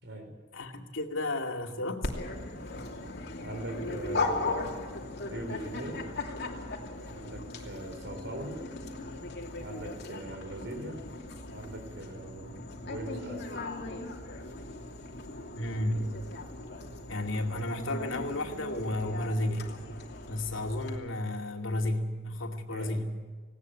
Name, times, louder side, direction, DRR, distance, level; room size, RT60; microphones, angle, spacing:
voice 1, 0.0-0.3 3.4-4.8 5.3-6.1 7.1-8.6 9.6-11.0 11.5-13.6 22.7-23.1, right 1 dB, 65° right, 4 dB, 4.9 m, -41 dB
voice 2, 0.5-2.1 15.6-16.1 17.1-19.7 20.3-23.1, left 1 dB, 85° left, 3 dB, 2.4 m, -32 dB
Dog, 2.0-21.0, left 2 dB, 55° left, 2.8 m, -38 dB
19.0 x 17.5 x 9.4 m, 1.4 s
head